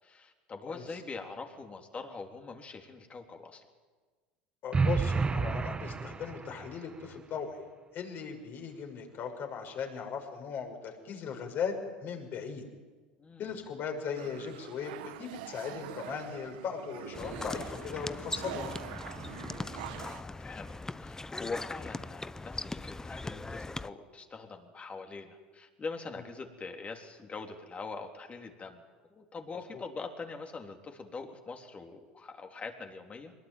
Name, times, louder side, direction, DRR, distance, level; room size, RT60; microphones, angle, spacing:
voice 1, 0.0-3.7 13.2-13.6 19.9-20.7 21.0-28.8 29.1-33.3, left 4 dB, 25° left, 4 dB, 3.6 m, -43 dB
voice 2, 0.6-1.0 4.6-7.5 7.9-12.6 13.4-18.7 29.7-29.8, left 6 dB, 50° left, 3 dB, 6.0 m, -38 dB
sound 1, 4.7-6.8, right 4 dB, 20° right, 1.0 m, -30 dB
sound 2, 14.1-20.2, right 13 dB, 75° right, 1.4 m, -45 dB
sound 3, 17.1-23.9, left 2 dB, 10° left, 0.7 m, -40 dB
23.5 x 21.0 x 9.4 m, 1.4 s
hypercardioid pair, 85°, 5 cm